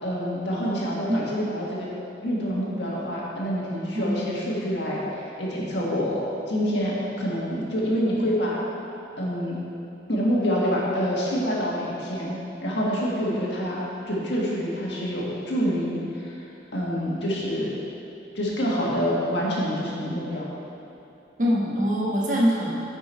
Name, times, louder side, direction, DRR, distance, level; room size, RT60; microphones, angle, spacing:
voice 1, 0.0-1.9 2.2-6.2 6.5-8.6 9.2-9.6 10.1-16.3 16.7-17.7 18.3-20.4, equal, 80° left, -5 dB, 1.7 m, -27 dB
voice 2, 3.9-4.2 21.4-22.8, equal, 45° right, -4 dB, 1.3 m, -23 dB
9.4 x 5.4 x 4.4 m, 2.8 s
head